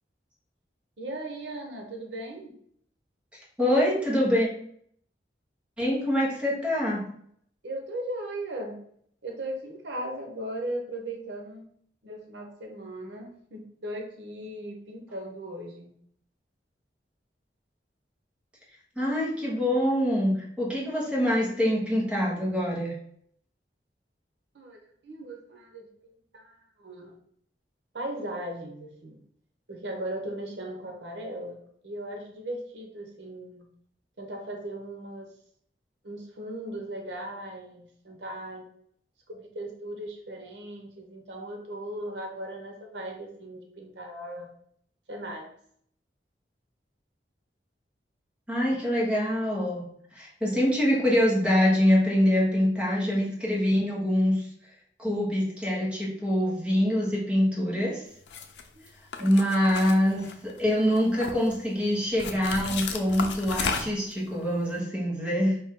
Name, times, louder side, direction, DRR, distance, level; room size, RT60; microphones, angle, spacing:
voice 1, 1.0-2.6 7.6-8.8 9.2-11.7 12.0-15.9 24.5-27.2 27.9-29.2 29.7-33.7 34.2-35.3 36.0-38.7 39.3-44.5 45.1-45.5 58.7-58.9 59.1-59.3, right 1 dB, 85° right, 2 dB, 0.9 m, -38 dB
voice 2, 3.3-4.5 5.8-7.1 19.0-23.0 48.5-54.5 55.0-58.0 59.2-65.6, equal, 5° right, -5 dB, 1.3 m, -25 dB
sound 1, 58.3-58.6 59.1-60.6 61.0-61.6 62.2-64.1, left 5 dB, 85° left, 0.6 m, -33 dB
5.0 x 2.7 x 3.7 m, 0.66 s
head